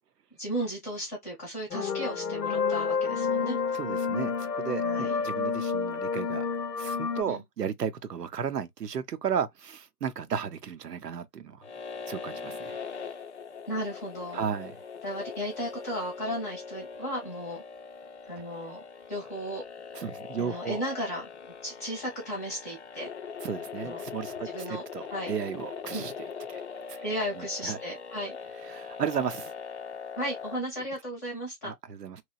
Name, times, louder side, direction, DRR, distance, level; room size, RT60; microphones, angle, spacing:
voice 1, 0.4-3.6 4.8-5.2 7.2-7.4 13.7-14.5 15.0-17.6 18.2-19.6 20.4-21.3 21.6-23.1 23.8-24.0 24.5-24.8 25.1-25.3 25.9-26.0 27.0-28.4 30.2-31.7, equal, 10° left, 0.7 m, -35 dB
sound 1, 1.7-7.2, left 5 dB, 85° left, 0.7 m, -29 dB
voice 2, 3.7-6.5 6.8-11.7 12.1-12.9 14.3-14.8 19.9-20.8 23.4-26.1 26.5-26.6 26.9-27.0 27.4-27.8 28.6-29.5 31.6-32.2, right 7 dB, 80° right, 0.7 m, -34 dB
sound 2, 11.6-30.6, left 5 dB, 50° left, 0.4 m, -41 dB
3.0 x 2.2 x 2.2 m
figure-of-eight pair, 145°, 47 cm